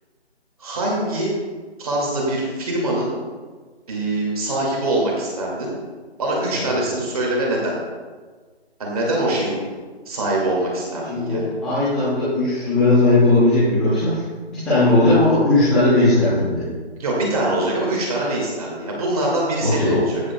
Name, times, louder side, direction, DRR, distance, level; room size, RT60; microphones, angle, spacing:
voice 1, 0.6-1.3 1.8-3.1 3.9-5.7 6.2-7.7 8.8-9.6 10.1-11.5 17.0-20.2, right 1 dB, 35° right, -3 dB, 2.1 m, -23 dB
voice 2, 6.5-7.0 11.1-14.2 14.6-16.6 19.6-20.0, left 2 dB, ahead, -16 dB, 0.7 m, -18 dB
14.5 x 7.9 x 2.3 m, 1.4 s
figure-of-eight pair, 160°, 33 cm